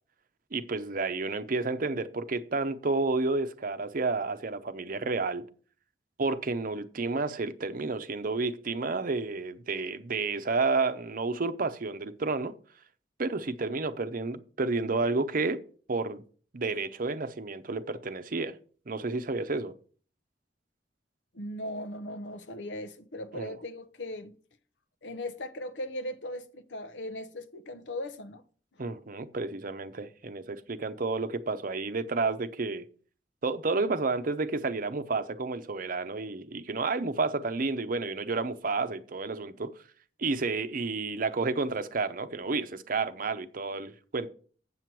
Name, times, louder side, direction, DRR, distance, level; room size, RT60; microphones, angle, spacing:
voice 1, 0.5-5.4 6.2-12.5 13.2-15.6 15.9-16.2 16.5-18.6 18.9-19.7 23.3-23.5 28.8-32.9 33.4-39.8 40.2-44.3, right 3 dB, 50° right, 0.7 m, -31 dB
voice 2, 21.3-24.3 25.0-28.4 28.8-28.9, left 1 dB, 80° left, 0.8 m, -38 dB
7.7 x 7.6 x 4.6 m
head